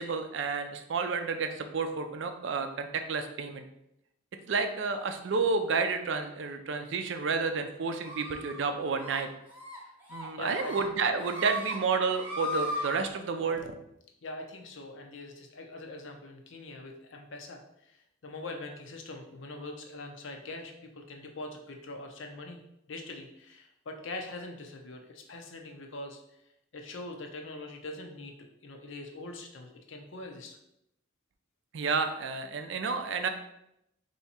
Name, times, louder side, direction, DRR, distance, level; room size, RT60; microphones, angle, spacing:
voice 1, 0.0-3.6 4.5-9.3 10.1-13.7 31.7-33.3, right 4 dB, 60° right, 6 dB, 0.4 m, -30 dB
sound 1, 8.0-8.6 9.0-9.2 9.5-9.8 10.1-10.8 11.2-11.8 12.1-12.9, left 1 dB, 10° right, 0.9 m, -36 dB
voice 2, 10.3-10.7 14.2-22.6 22.9-26.2 26.7-28.3 28.6-30.6, left 2 dB, 65° left, 3 dB, 0.6 m, -43 dB
3.4 x 2.8 x 4.2 m, 0.80 s
head